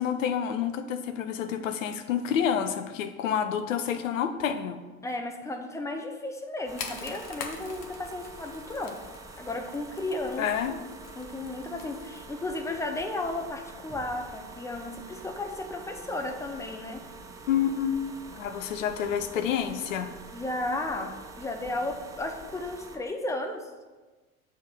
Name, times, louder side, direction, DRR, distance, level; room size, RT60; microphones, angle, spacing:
voice 1, 0.0-4.8 10.4-10.8 17.5-18.0 18.3-20.1, left 8 dB, 65° left, 9 dB, 0.7 m, -28 dB
voice 2, 5.0-9.0 9.4-10.8 11.2-17.0 20.3-23.6, left 2 dB, 5° left, 4 dB, 0.7 m, -34 dB
sound 1, 6.7-23.0, right 3 dB, 10° right, 0.4 m, -46 dB
sound 2, 6.8-12.3, left 6 dB, 40° left, 1.0 m, -44 dB
7.2 x 3.8 x 5.8 m, 1.3 s
figure-of-eight pair, 75°, 41 cm